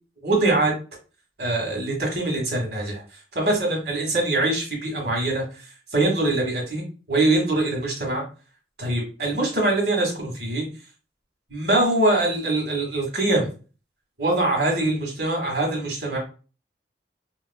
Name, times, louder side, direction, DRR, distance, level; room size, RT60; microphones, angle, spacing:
voice 1, 0.2-0.7 1.4-3.0 3.3-8.2 8.8-10.7 11.5-13.5 14.2-16.2, right 2 dB, 65° right, 0 dB, 1.3 m, -23 dB
4.4 x 2.4 x 2.2 m, 0.35 s
head